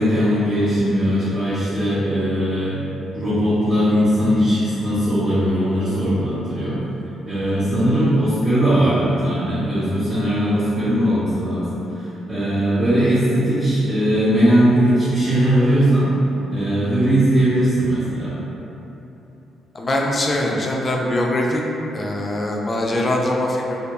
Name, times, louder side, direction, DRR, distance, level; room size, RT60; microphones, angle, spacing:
voice 1, 0.0-2.8 3.1-6.8 7.2-16.1 16.5-18.3, equal, 25° right, -13 dB, 0.7 m, -19 dB
voice 2, 19.7-21.6 21.9-23.8, left 1 dB, 35° left, -1 dB, 0.3 m, -22 dB
2.3 x 2.2 x 2.9 m, 3.0 s
cardioid pair, 90°, 0 cm